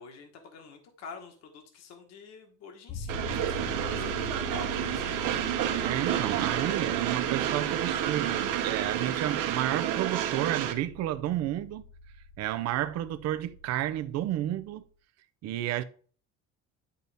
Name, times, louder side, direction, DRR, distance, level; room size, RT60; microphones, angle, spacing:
voice 1, 0.0-4.1 4.5-5.3, left 5 dB, 55° left, 1.4 m, -48 dB
sound 1, 2.9-14.8, left 2 dB, 25° left, 1.1 m, -43 dB
Train, 3.1-10.7, right 10 dB, 85° right, 1.1 m, -30 dB
voice 2, 5.8-11.8 12.4-14.8 15.4-15.8, right 13 dB, 55° right, 0.6 m, -31 dB
10.5 x 4.1 x 3.4 m
cardioid pair, 160°, 31 cm